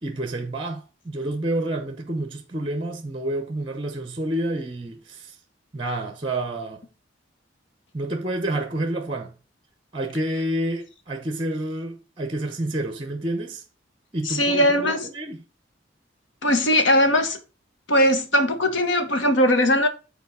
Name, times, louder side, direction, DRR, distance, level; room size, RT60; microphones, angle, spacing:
voice 1, 0.0-5.4 5.7-6.8 7.9-9.3 9.9-13.6 14.1-15.4, right 1 dB, 25° right, 0.9 m, -29 dB
voice 2, 14.2-15.1 16.4-17.4 17.9-19.9, left 1 dB, 75° left, 1.3 m, -19 dB
7.2 x 4.3 x 5.4 m
head